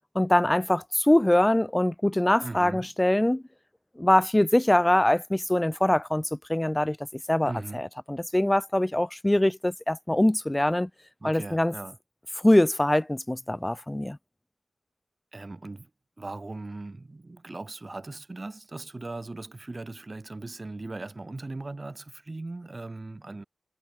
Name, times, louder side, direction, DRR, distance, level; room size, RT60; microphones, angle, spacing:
voice 1, 0.2-3.4 4.0-7.0 7.3-10.9 11.2-11.7 12.4-14.2, left 1 dB, 15° left, 2.1 m, -23 dB
voice 2, 2.4-2.9 7.4-7.8 11.2-12.0 15.3-15.9 16.2-23.4, right 2 dB, 35° right, 4.9 m, -39 dB
wide cardioid pair, 90°, 0 cm